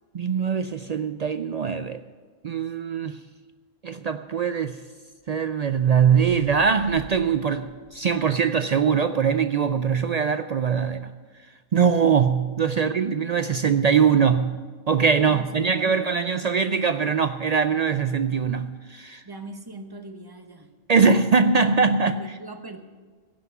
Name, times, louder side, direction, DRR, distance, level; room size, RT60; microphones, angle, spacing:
voice 1, 0.1-2.0 2.4-3.2 3.8-4.8 5.3-11.1 11.7-14.5 14.9-19.2 20.9-22.2, right 6 dB, 55° right, 10 dB, 0.5 m, -22 dB
sound 1, 5.7-8.9, right 1 dB, 90° right, 4.0 m, -48 dB
voice 2, 15.2-16.0 19.2-20.8 22.2-22.8, right 2 dB, 25° right, 6 dB, 1.0 m, -41 dB
16.5 x 5.9 x 9.4 m, 1.5 s
omnidirectional pair, 1.0 m